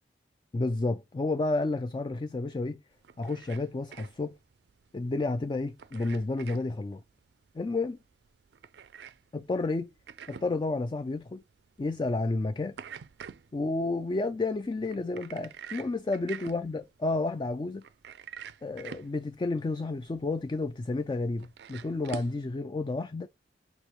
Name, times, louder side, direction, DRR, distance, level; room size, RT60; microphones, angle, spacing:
voice 1, 0.5-2.8 3.2-4.3 4.9-7.0 7.5-8.0 9.3-9.9 10.3-11.4 11.8-12.8 13.5-17.8 18.6-23.3, left 2 dB, 25° left, 0.3 m, -31 dB
sound 1, 2.9-22.4, right 7 dB, 60° right, 0.4 m, -48 dB
6.1 x 2.8 x 3.0 m
head